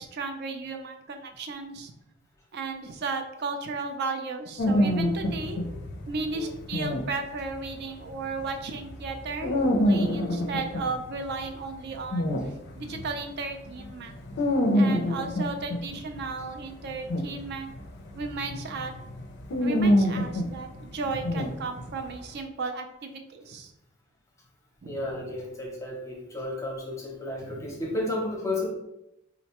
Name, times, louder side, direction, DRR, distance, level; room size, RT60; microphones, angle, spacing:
voice 1, 0.0-1.9 2.5-5.6 6.0-9.6 9.8-12.3 12.8-14.1 14.7-17.7 18.1-18.9 19.6-23.7 24.8-25.1 27.4-27.8, right 3 dB, 50° right, 6 dB, 0.4 m, -34 dB
sound 1, 4.6-13.2 13.7-22.1, equal, 50° left, 0.4 m, -27 dB
voice 2, 24.8-28.7, left 2 dB, 15° left, -1 dB, 0.6 m, -33 dB
3.8 x 2.1 x 2.9 m, 0.87 s
head